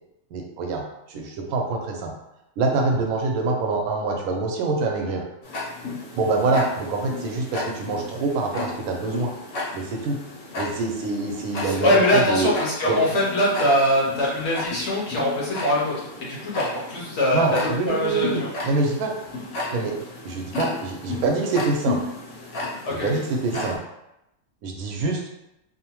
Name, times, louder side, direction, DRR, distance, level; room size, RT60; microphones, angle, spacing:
voice 1, 0.3-0.8 1.1-2.1 2.6-5.2 6.1-9.3 9.7-10.2 10.6-12.5 12.9-13.0 17.3-19.1 19.7-19.9 20.2-22.0 22.9-23.8 24.6-25.3, right 3 dB, 90° right, 1 dB, 1.1 m, -25 dB
Tick-tock, 5.4-23.8, left 2 dB, 80° left, 1.2 m, -34 dB
voice 2, 11.6-17.6 17.8-18.5 22.8-23.2, left 1 dB, 60° left, -5 dB, 0.9 m, -22 dB
2.8 x 2.1 x 2.9 m, 0.88 s
omnidirectional pair, 1.5 m